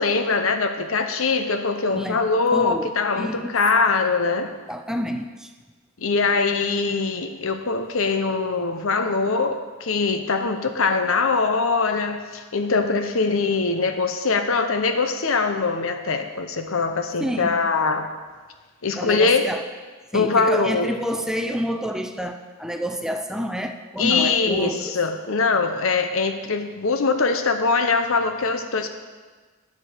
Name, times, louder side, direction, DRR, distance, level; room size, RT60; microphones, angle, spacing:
voice 1, 0.0-4.5 6.0-18.1 18.8-19.4 20.1-20.9 24.0-28.9, left 4 dB, 70° left, 7 dB, 0.9 m, -22 dB
voice 2, 2.5-3.5 4.7-5.5 17.2-17.6 18.9-19.6 20.1-25.0, equal, 5° right, 6 dB, 0.5 m, -29 dB
9.7 x 6.7 x 6.7 m, 1.4 s
head